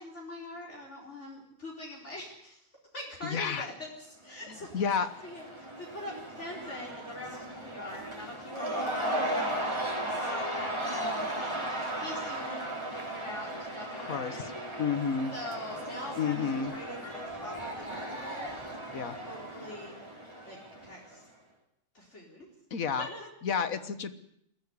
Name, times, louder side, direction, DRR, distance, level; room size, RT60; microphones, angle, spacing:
voice 1, 0.0-2.6 2.9-14.4 15.3-18.5 18.9-20.0 20.4-21.3 21.9-22.5 23.0-23.3, left 1 dB, 55° left, -2 dB, 4.7 m, -44 dB
voice 2, 3.2-3.7 4.7-5.1 14.1-14.5 14.8-15.3 16.2-16.7 18.9-19.1 22.7-23.1 23.4-24.1, left 6 dB, 85° left, 12 dB, 1.7 m, -30 dB
Cheering / Crowd, 4.3-21.2, right 1 dB, 20° right, 3.1 m, -36 dB
21.5 x 14.5 x 9.7 m, 0.73 s
omnidirectional pair, 1.4 m